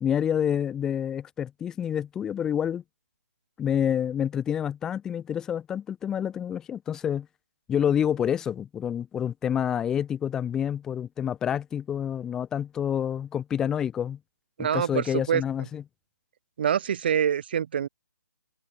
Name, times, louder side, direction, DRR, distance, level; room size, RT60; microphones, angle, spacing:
voice 1, 0.0-2.8 3.6-7.3 7.7-14.2 14.6-15.8, left 9 dB, 5° left, 1.1 m, -28 dB
voice 2, 14.6-15.4 16.6-17.9, right 8 dB, 35° right, 4.4 m, -25 dB
hypercardioid pair, 175°, 10 cm